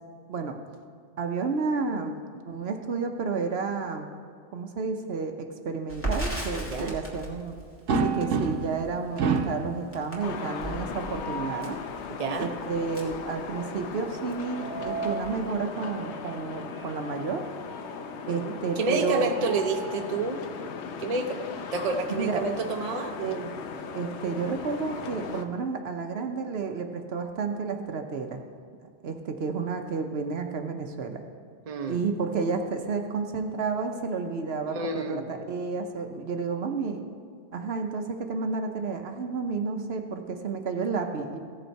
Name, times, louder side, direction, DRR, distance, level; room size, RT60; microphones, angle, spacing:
voice 1, 1.2-2.2 2.5-4.1 4.5-7.6 8.0-11.8 12.4-17.4 18.3-19.3 22.1-22.4 23.2-23.5 23.9-28.4 29.0-31.2 31.9-37.0 37.5-41.4, right 5 dB, 65° right, 5 dB, 0.9 m, -31 dB
Crackle, 5.9-14.0 14.3-14.4 14.7-15.5, right 1 dB, 10° left, 2.0 m, -37 dB
sound 1, 7.9-8.8 9.2-9.7 10.9-11.6 14.3-15.3 16.8-16.9 17.3-17.4 18.9-20.2, right 4 dB, 85° right, 1.1 m, -30 dB
sound 2, 10.2-25.5, left 5 dB, 75° left, 1.0 m, -38 dB
voice 2, 12.2-12.5 18.3-20.4 21.0-21.4 21.7-23.1 31.7-32.0 34.7-35.3, right 3 dB, 35° right, 4 dB, 0.7 m, -29 dB
16.0 x 6.6 x 4.5 m, 2.1 s
omnidirectional pair, 1.2 m